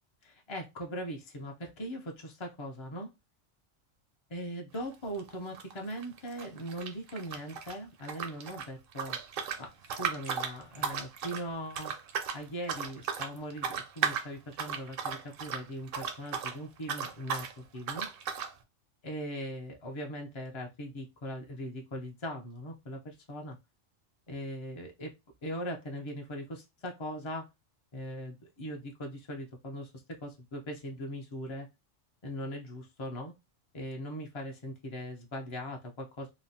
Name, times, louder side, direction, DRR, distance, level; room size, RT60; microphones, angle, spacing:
voice 1, 0.2-3.1 4.3-9.2 9.6-9.7 10.0-11.9 12.3-18.1 19.0-23.6 24.3-25.1 25.4-27.5 27.9-31.7 32.2-33.3 33.7-36.3, equal, 50° left, 1 dB, 0.3 m, -40 dB
sound 1, 4.7-4.9 5.2-7.7 8.0-16.6 16.8-17.5 17.9-18.5, right 7 dB, 60° right, 0.6 m, -36 dB
3.0 x 2.0 x 2.6 m, 0.23 s
omnidirectional pair, 1.3 m